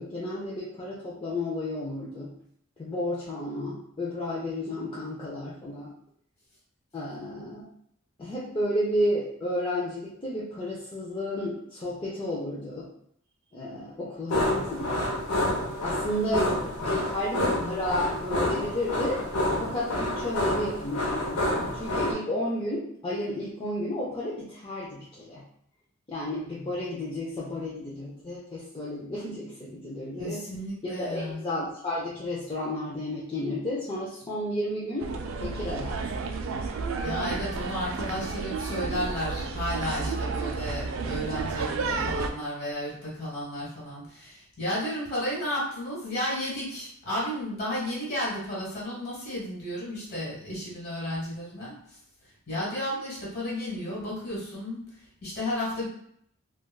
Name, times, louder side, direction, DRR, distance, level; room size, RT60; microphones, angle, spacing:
voice 1, 0.0-2.3 2.8-5.9 6.9-7.7 8.2-12.9 13.5-15.1 15.8-19.3 19.6-21.4 21.7-25.4 26.1-30.4 30.8-35.1 35.4-36.2, left 1 dB, 20° left, -7 dB, 0.4 m, -32 dB
sound 1, 14.3-22.1, left 1 dB, 90° left, 0.7 m, -28 dB
voice 2, 30.2-31.4 37.0-51.7 52.5-54.8 55.2-55.9, equal, 45° left, -7 dB, 1.5 m, -33 dB
sound 2, 35.0-42.3, right 4 dB, 65° right, 0.3 m, -31 dB
3.3 x 2.3 x 2.2 m, 0.68 s
head